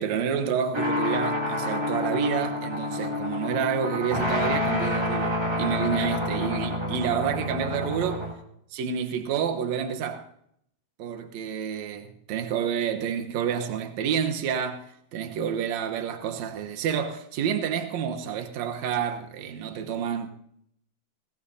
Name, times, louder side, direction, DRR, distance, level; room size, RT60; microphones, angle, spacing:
voice 1, 0.0-8.3 8.7-10.3 11.0-20.3, right 8 dB, 65° right, 2.3 m, -29 dB
sound 1, 0.7-8.3, left 1 dB, 10° right, 1.9 m, -28 dB
21.0 x 17.0 x 2.8 m
omnidirectional pair, 3.6 m